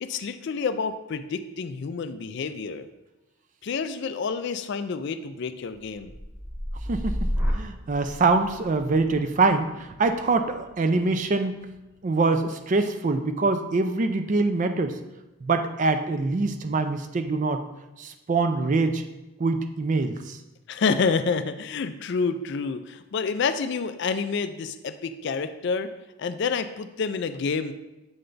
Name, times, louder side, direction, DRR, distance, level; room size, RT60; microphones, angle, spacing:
voice 1, 0.0-2.9 3.6-6.1 20.7-25.9 26.2-27.7, left 5 dB, 50° left, 10 dB, 0.3 m, -28 dB
sound 1, 5.8-13.8 14.2-14.7, equal, 10° right, 0.9 m, -34 dB
voice 2, 6.9-11.7 12.0-15.0 15.4-17.6 18.0-19.0 19.4-20.4, right 3 dB, 35° right, 8 dB, 0.4 m, -24 dB
7.8 x 3.3 x 3.8 m, 1.0 s
head